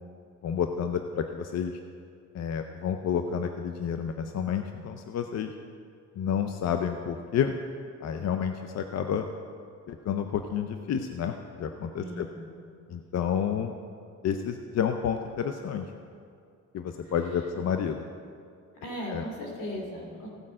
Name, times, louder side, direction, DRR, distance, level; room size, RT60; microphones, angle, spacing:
voice 1, 0.4-1.8 2.3-5.5 6.2-7.6 8.0-9.3 9.9-12.3 12.9-13.7 14.2-15.9 16.7-18.1 19.1-19.3, left 8 dB, 60° left, 6 dB, 0.7 m, -30 dB
voice 2, 12.0-12.3 18.8-20.3, equal, 90° left, -2 dB, 3.1 m, -37 dB
16.0 x 5.4 x 7.5 m, 2.4 s
cardioid pair, 90°, 30 cm